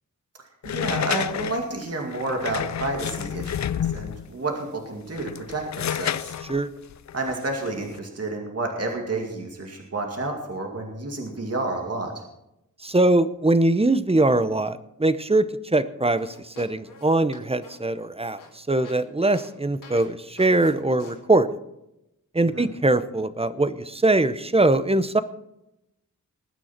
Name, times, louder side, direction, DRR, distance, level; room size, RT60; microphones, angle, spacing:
sound 1, 0.6-4.3 5.0-8.0, left 9 dB, 60° left, 0.4 m, -30 dB
voice 1, 0.6-6.3 7.1-12.2 22.4-22.7, right 2 dB, 50° right, 2 dB, 2.4 m, -30 dB
voice 2, 12.8-21.5 22.3-25.2, right 2 dB, 20° right, 13 dB, 0.7 m, -22 dB
sound 2, 16.2-19.0 19.3-19.5 19.8-20.1 20.4-20.7 21.0-21.2, left 4 dB, 80° left, 3.2 m, -46 dB
20.5 x 9.2 x 4.4 m, 0.86 s
wide cardioid pair, 110°, 32 cm